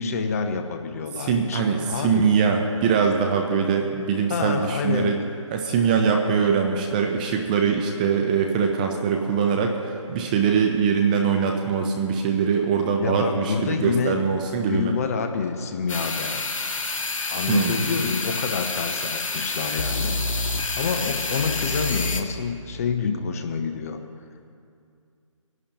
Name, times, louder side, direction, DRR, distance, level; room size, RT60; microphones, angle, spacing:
voice 1, 0.0-2.3 4.3-5.1 13.0-14.2 14.7-16.4 17.3-20.2 20.8-24.0, left 5 dB, 30° left, 6 dB, 0.8 m, -27 dB
voice 2, 1.2-5.2 5.5-14.9 17.5-17.8, right 6 dB, 15° right, 3 dB, 0.6 m, -22 dB
sound 1, 15.9-22.2, left 3 dB, 75° left, 1.4 m, -28 dB
24.5 x 11.0 x 2.9 m, 2.4 s
figure-of-eight pair, 155°, 17 cm